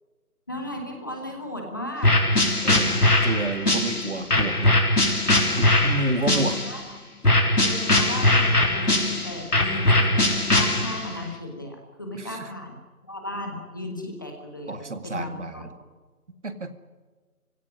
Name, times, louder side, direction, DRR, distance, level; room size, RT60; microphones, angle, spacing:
voice 1, 0.5-2.1 6.3-6.8 7.6-12.8 13.1-15.6, left 1 dB, 15° left, 2 dB, 1.4 m, -35 dB
sound 1, 2.0-6.8 7.2-11.2, left 1 dB, 85° left, 4.3 m, -21 dB
voice 2, 2.6-4.8 5.6-6.6 12.1-12.5 14.7-15.7 16.4-16.7, right 2 dB, 50° right, 10 dB, 2.2 m, -30 dB
25.0 x 17.0 x 9.9 m, 1.3 s
figure-of-eight pair, 165°, 45 cm